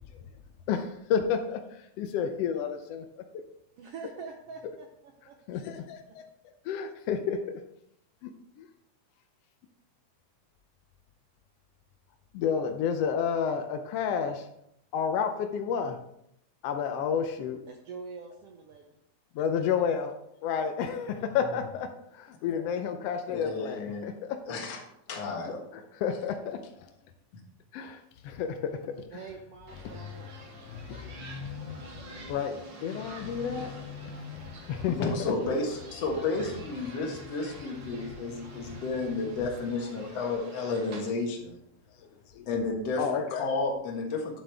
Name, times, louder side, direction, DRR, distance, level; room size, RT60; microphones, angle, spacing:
voice 1, 0.7-1.6 2.0-3.2 5.5-6.0 6.6-7.6 8.2-8.3 8.6-8.7 12.3-14.5 14.9-16.0 16.6-17.6 19.4-20.1 20.4-21.9 22.1-24.4 25.4-26.6 27.7-29.4 29.8-30.0 30.7-36.0 36.3-36.5 37.4-37.5 37.8-39.5 40.3-40.4 43.0-43.5, left 7 dB, 80° left, 6 dB, 1.4 m, -31 dB
voice 2, 3.8-6.1 17.7-18.9 29.1-30.3, right 5 dB, 75° right, 3 dB, 1.4 m, -45 dB
voice 3, 23.3-24.0 24.5-24.8 25.1-25.6 35.0-41.6 42.5-44.4, left 3 dB, 60° left, 1 dB, 2.5 m, -32 dB
sound 1, 29.7-41.1, right 2 dB, 45° right, 1.8 m, -48 dB
9.6 x 7.5 x 3.4 m, 0.77 s
omnidirectional pair, 3.5 m